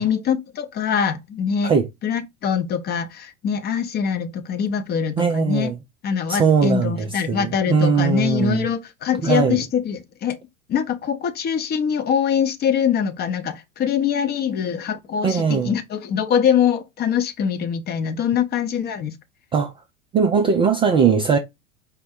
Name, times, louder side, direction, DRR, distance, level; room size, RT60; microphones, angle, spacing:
voice 1, 0.0-1.7 2.0-5.7 6.0-10.4 10.7-19.2, left 7 dB, 25° left, 0.6 m, -23 dB
voice 2, 5.2-5.7 6.3-8.7 9.2-9.6 15.2-15.7 19.5-19.7 20.1-21.4, right 6 dB, 15° right, 0.3 m, -19 dB
4.9 x 2.1 x 4.2 m
figure-of-eight pair, 85°, 38 cm